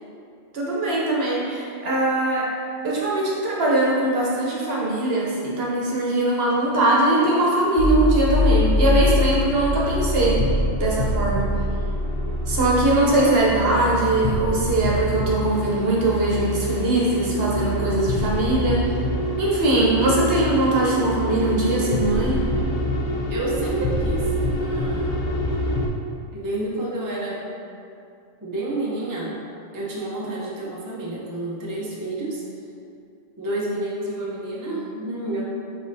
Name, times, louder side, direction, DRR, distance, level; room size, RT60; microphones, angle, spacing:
voice 1, 0.5-2.5 2.8-11.5 12.5-18.8 19.4-22.4, right 2 dB, 55° right, -5 dB, 1.0 m, -21 dB
sound 1, 7.8-25.9, left 1 dB, 60° left, 0.5 m, -24 dB
voice 2, 23.3-24.3 24.6-25.3 26.3-27.5 28.4-29.4 29.7-32.4 33.4-35.4, right 1 dB, 25° right, -5 dB, 0.4 m, -29 dB
5.4 x 3.8 x 2.6 m, 2.5 s
omnidirectional pair, 1.3 m